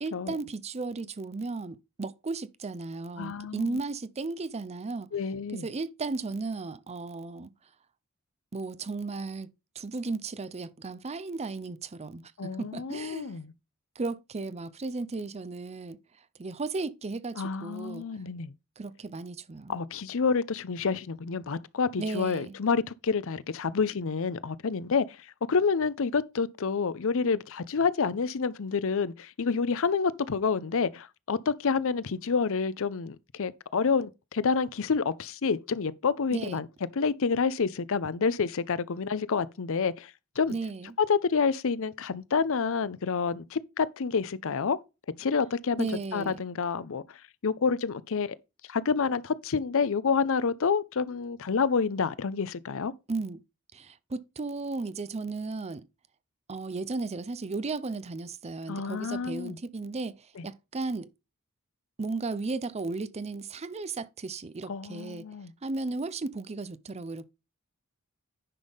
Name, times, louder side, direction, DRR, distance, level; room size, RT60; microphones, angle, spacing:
voice 1, 0.0-5.1 5.5-7.5 8.5-13.4 14.0-16.0 16.4-18.1 18.8-19.8 22.0-22.6 36.3-36.6 40.5-41.0 45.8-46.4 53.1-53.4 53.7-55.9 56.5-61.1 62.0-65.3 65.6-67.3, right 3 dB, 30° right, 0.5 m, -35 dB
voice 2, 3.2-3.8 5.1-5.7 12.4-13.5 17.4-18.5 19.7-36.7 37.0-40.5 41.0-44.8 45.2-48.4 48.7-52.9 58.7-59.6 60.4-60.5 64.7-65.5, left 5 dB, 65° left, 0.6 m, -28 dB
10.0 x 5.5 x 3.5 m
head